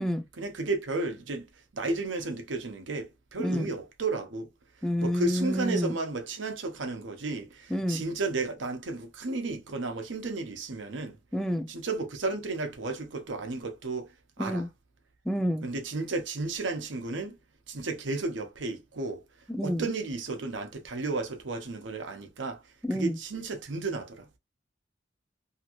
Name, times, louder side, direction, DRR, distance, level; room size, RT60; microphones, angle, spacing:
voice 1, 0.4-1.4 1.7-3.1 3.3-4.5 5.0-11.2 11.7-14.1 14.4-14.6 15.6-17.4 17.7-19.2 19.6-22.6 22.9-24.2, right 3 dB, 90° right, 0.8 m, -33 dB
voice 2, 3.4-3.7 4.8-6.0 7.7-8.0 11.3-11.7 14.4-14.7 15.3-15.7 19.5-19.8 22.8-23.2, equal, 5° left, 0.4 m, -29 dB
2.8 x 2.5 x 2.9 m
head